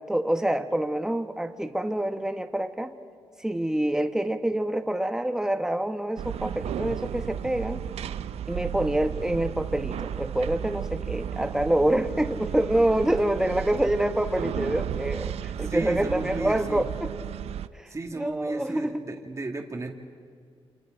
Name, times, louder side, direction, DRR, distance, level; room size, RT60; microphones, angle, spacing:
voice 1, 0.1-2.9 3.4-7.9 8.5-17.1 17.7-17.9 18.2-19.0, right 1 dB, 5° right, 7 dB, 1.4 m, -26 dB
sound 1, 6.2-17.7, right 9 dB, 80° right, 0.6 m, -34 dB
voice 2, 15.6-16.8 17.9-19.9, right 2 dB, 30° right, 2 dB, 1.7 m, -34 dB
29.0 x 27.0 x 5.1 m, 2.1 s
cardioid pair, 90°, 10 cm